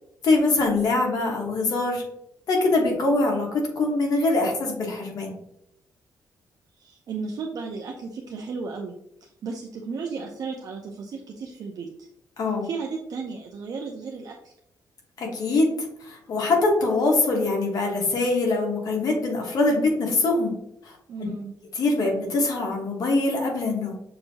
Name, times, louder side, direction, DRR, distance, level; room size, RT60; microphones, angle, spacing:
voice 1, 0.2-2.0 2.5-5.4 12.4-12.7 15.2-15.7 16.0-20.5 20.8-21.0 21.7-24.0, left 2 dB, 60° left, 0 dB, 1.3 m, -23 dB
voice 2, 6.8-8.9 9.2-12.1 12.6-14.5 21.1-21.5, right 4 dB, 60° right, 1 dB, 0.5 m, -34 dB
6.6 x 2.7 x 2.8 m, 0.78 s
cardioid pair, 110°, 7 cm